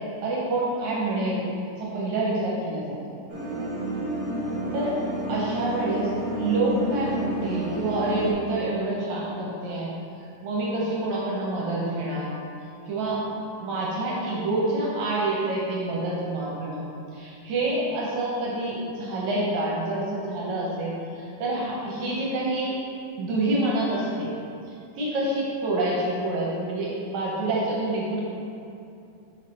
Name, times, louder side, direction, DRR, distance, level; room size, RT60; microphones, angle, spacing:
voice 1, 0.2-1.4 1.8-3.0 4.7-5.0 5.3-9.9 10.4-12.3 12.9-13.2 13.6-16.9 17.1-22.8 23.2-24.3 24.7-28.2, right 2 dB, 70° right, -4 dB, 2.1 m, -27 dB
sound 1, 3.3-8.3, right 1 dB, 45° right, 1.3 m, -30 dB
5.8 x 5.7 x 4.3 m, 2.6 s
omnidirectional pair, 3.7 m